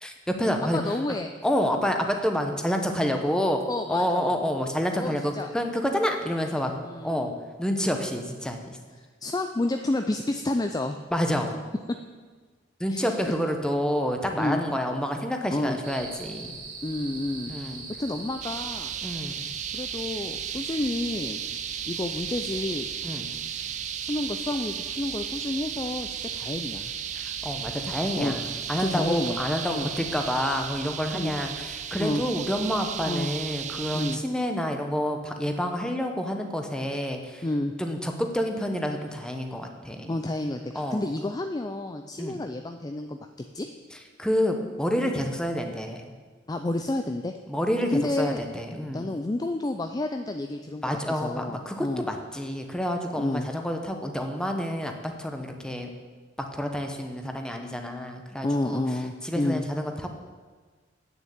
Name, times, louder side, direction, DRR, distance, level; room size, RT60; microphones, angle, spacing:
voice 1, 0.0-0.8 1.1-1.2 1.4-3.6 3.9-7.3 7.6-8.8 11.1-11.6 12.8-16.6 17.5-17.8 19.0-19.5 23.0-23.3 27.1-28.4 28.7-37.4 37.8-40.1 40.7-41.0 42.2-42.4 44.2-46.1 47.5-49.1 50.8-55.9 56.4-58.8 59.2-60.1, equal, 5° left, 4 dB, 1.0 m, -28 dB
voice 2, 0.7-1.3 3.7-4.3 5.0-5.5 6.8-7.3 9.2-11.0 11.9-12.0 12.9-13.1 14.4-14.6 15.5-15.8 16.8-18.9 19.7-21.4 21.9-22.9 24.1-26.9 27.9-28.4 28.8-29.4 29.7-29.9 31.1-31.3 32.0-32.2 33.0-33.3 33.9-34.2 37.4-37.7 40.1-43.2 43.5-43.7 46.5-47.3 47.9-48.4 48.7-52.0 53.1-53.5 58.4-59.6, left 2 dB, 20° left, 6 dB, 0.4 m, -30 dB
sound 1, 15.8-30.6, right 4 dB, 75° right, 3.0 m, -41 dB
sound 2, 18.4-34.2, right 9 dB, 40° right, 0.4 m, -35 dB
9.1 x 6.8 x 8.5 m, 1.4 s
head